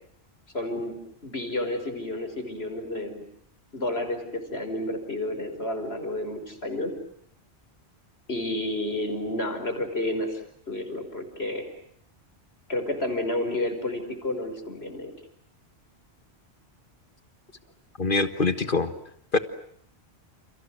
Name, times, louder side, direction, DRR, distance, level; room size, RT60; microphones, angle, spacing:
voice 1, 0.5-0.9 1.2-3.2 3.7-6.9 8.3-10.4 10.7-11.7 12.7-15.1, left 1 dB, 70° left, 7 dB, 5.5 m, -30 dB
voice 2, 18.0-18.9 19.3-19.4, left 3 dB, 50° left, 10 dB, 1.6 m, -24 dB
30.0 x 30.0 x 6.3 m, 0.66 s
omnidirectional pair, 1.1 m